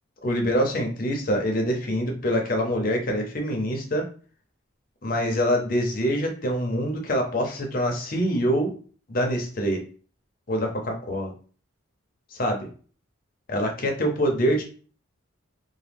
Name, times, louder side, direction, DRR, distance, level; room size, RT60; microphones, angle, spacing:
voice 1, 0.2-4.1 5.0-8.7 9.1-9.8 10.5-11.3 12.3-12.7 13.5-14.7, equal, 45° left, 3 dB, 0.6 m, -25 dB
3.0 x 2.1 x 3.4 m, 0.41 s
head